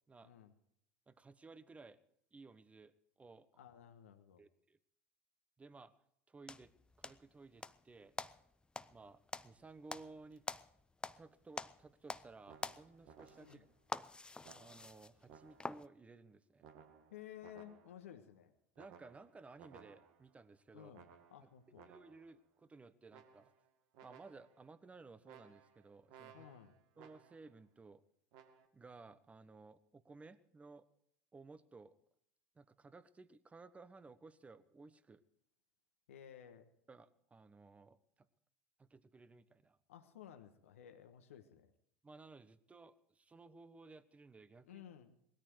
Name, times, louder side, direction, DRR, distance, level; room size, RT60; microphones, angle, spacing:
voice 1, 0.2-0.5 3.6-4.4 13.4-13.6 17.1-18.5 20.7-21.9 26.3-26.7 36.1-36.7 39.9-41.7 44.7-45.2, left 10 dB, 75° left, 7 dB, 1.5 m, -55 dB
voice 2, 1.1-2.0 2.3-3.6 4.4-4.8 5.6-5.9 6.3-6.7 7.0-8.1 8.9-10.4 11.2-13.7 14.5-16.7 18.8-20.9 21.4-21.5 21.9-23.5 24.0-26.5 27.0-28.0 28.7-30.9 31.3-32.0 32.5-35.2 36.9-38.3 38.8-39.8 42.0-44.8, right 3 dB, 20° right, 14 dB, 1.2 m, -57 dB
sound 1, 6.5-7.8 8.2-11.3 11.5-12.3 12.6-15.9, left 3 dB, 10° left, 0.7 m, -46 dB
sound 2, 12.4-13.8 14.4-15.9 16.6-18.1 18.8-20.4 20.9-22.4 23.1-23.7 23.9-24.7 25.2-27.6 28.3-28.7, right 7 dB, 60° right, 2.3 m, -61 dB
19.5 x 13.5 x 4.7 m, 0.71 s
hypercardioid pair, 75°, 7 cm